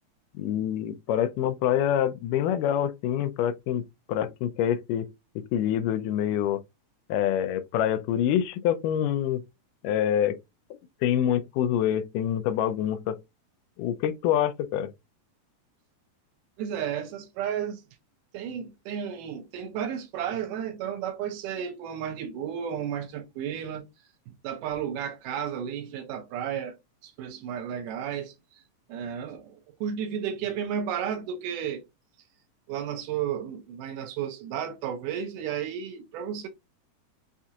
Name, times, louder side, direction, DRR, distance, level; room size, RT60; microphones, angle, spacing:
voice 1, 0.3-3.8 4.1-5.1 5.4-6.6 7.1-9.4 9.8-10.4 11.0-13.2 13.8-14.9, left 10 dB, 90° left, 2.2 m, -26 dB
voice 2, 16.6-17.8 18.3-23.8 24.3-26.8 27.0-28.3 28.9-31.8 32.7-36.5, right 8 dB, 90° right, 2.3 m, -33 dB
6.0 x 2.7 x 2.3 m
omnidirectional pair, 3.6 m